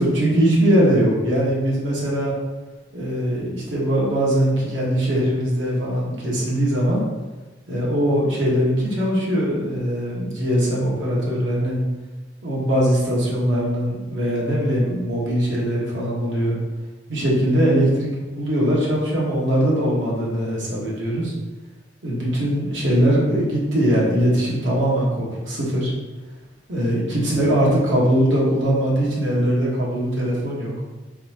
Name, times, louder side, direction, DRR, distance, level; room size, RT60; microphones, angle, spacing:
voice 1, 0.0-2.3 2.9-7.0 7.7-11.8 12.4-16.6 17.1-18.1 18.3-21.3 22.0-25.9 26.7-30.7, equal, 85° right, -5 dB, 1.3 m, -21 dB
4.1 x 3.6 x 2.9 m, 1.2 s
head